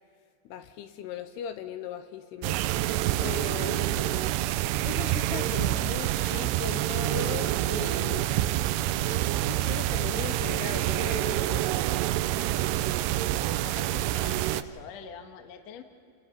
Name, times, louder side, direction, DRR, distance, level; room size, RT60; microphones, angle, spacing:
voice 1, 0.5-2.6 3.2-4.2 4.8-8.3 9.3-11.7, left 9 dB, 80° left, 9 dB, 2.7 m, -38 dB
sound 1, 2.4-14.6, right 14 dB, 80° right, 2.7 m, -27 dB
voice 2, 13.6-15.8, left 7 dB, 60° left, 5 dB, 1.9 m, -45 dB
29.0 x 18.5 x 6.0 m, 2.5 s
omnidirectional pair, 4.9 m